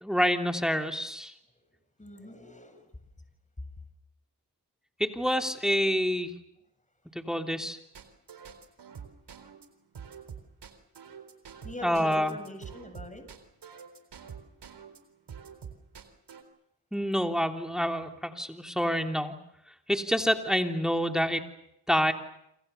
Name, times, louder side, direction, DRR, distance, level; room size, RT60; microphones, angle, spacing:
voice 1, 0.0-1.3 5.0-6.3 7.1-7.8 11.8-12.4 16.9-19.3 19.9-21.4 21.9-22.1, equal, ahead, 4 dB, 3.1 m, -27 dB
voice 2, 2.0-2.9 11.6-13.2, left 1 dB, 15° left, 8 dB, 7.2 m, -43 dB
sound 1, 7.9-15.0 15.3-16.4, right 7 dB, 70° right, 4.1 m, -46 dB
28.0 x 25.5 x 7.0 m, 0.79 s
cardioid pair, 55°, 42 cm